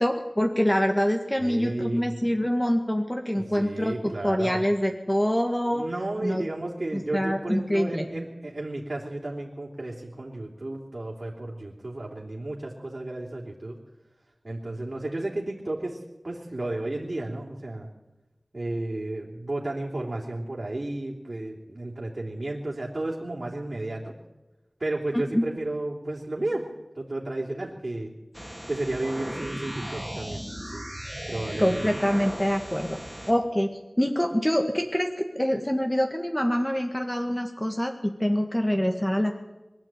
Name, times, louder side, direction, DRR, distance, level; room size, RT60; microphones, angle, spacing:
voice 1, 0.0-5.8 6.2-6.4 6.9-8.0 25.1-25.4 31.6-33.0 33.3-33.7 34.0-39.4, equal, 15° left, 4 dB, 1.8 m, -25 dB
voice 2, 1.4-2.3 3.3-4.6 5.7-13.8 14.4-16.0 16.2-17.9 18.5-24.1 24.8-26.7 26.9-28.1 28.7-30.4 30.7-30.8 31.3-31.8, right 2 dB, 60° right, -3 dB, 3.3 m, -33 dB
sound 1, 28.3-33.3, equal, 5° right, 2.9 m, -37 dB
23.0 x 12.5 x 9.1 m, 1.1 s
wide cardioid pair, 45°, 0 cm